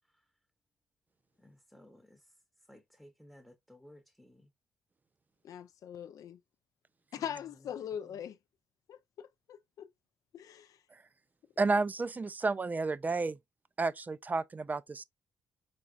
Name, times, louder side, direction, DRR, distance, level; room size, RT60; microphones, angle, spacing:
voice 1, 1.4-2.2 2.7-4.5 7.2-7.7 8.0-8.2, left 1 dB, ahead, 0.8 m, -57 dB
voice 2, 5.4-6.4 7.1-8.4 8.9-9.9 10.3-10.7, left 9 dB, 55° left, 0.4 m, -41 dB
voice 3, 11.6-13.4 13.8-15.0, right 3 dB, 25° right, 0.4 m, -31 dB
4.8 x 3.4 x 2.3 m
figure-of-eight pair, 40°, 7 cm